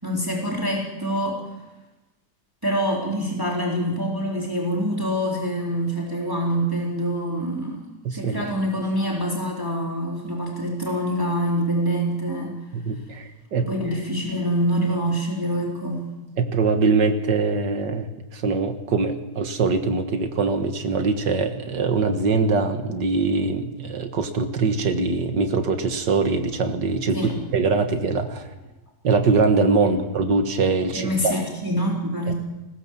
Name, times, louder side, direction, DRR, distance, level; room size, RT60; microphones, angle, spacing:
voice 1, 0.0-1.4 2.6-12.6 13.6-16.0 27.1-27.4 29.8-30.0 31.0-32.3, equal, 10° right, -2 dB, 3.7 m, -25 dB
voice 2, 8.0-8.5 12.7-13.7 16.4-28.4 29.0-31.3 32.3-32.4, right 4 dB, 90° right, 6 dB, 2.2 m, -23 dB
20.0 x 19.0 x 7.4 m, 1.0 s
omnidirectional pair, 1.8 m